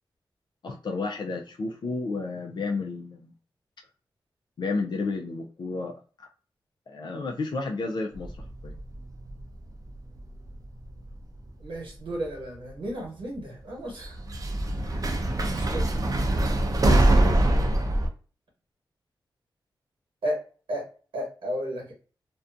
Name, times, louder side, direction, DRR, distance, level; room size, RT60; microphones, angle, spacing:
voice 1, 0.6-3.3 4.6-6.0 6.9-8.7 16.8-17.7, left 3 dB, 60° left, 2 dB, 0.4 m, -32 dB
sound 1, 8.1-10.2 10.5-11.2 12.2-12.3 14.0-18.1, right 1 dB, 45° right, 0.5 m, -24 dB
voice 2, 11.6-14.2 14.6-15.9 20.2-20.4 20.7-20.9 21.1-21.9, equal, 85° right, -1 dB, 1.1 m, -34 dB
2.5 x 2.2 x 2.4 m, 0.38 s
cardioid pair, 65°, 9 cm